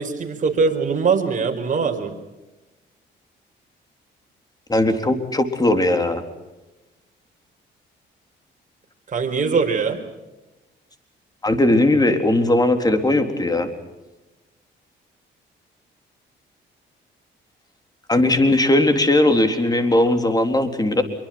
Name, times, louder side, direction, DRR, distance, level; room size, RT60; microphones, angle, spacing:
voice 1, 0.0-2.1 9.1-10.0, right 5 dB, 40° right, 3 dB, 5.3 m, -21 dB
voice 2, 4.7-6.2 11.4-13.7 18.1-21.0, left 1 dB, 20° left, 7 dB, 3.8 m, -18 dB
26.5 x 23.5 x 6.2 m, 1.0 s
cardioid pair, 90°, 20 cm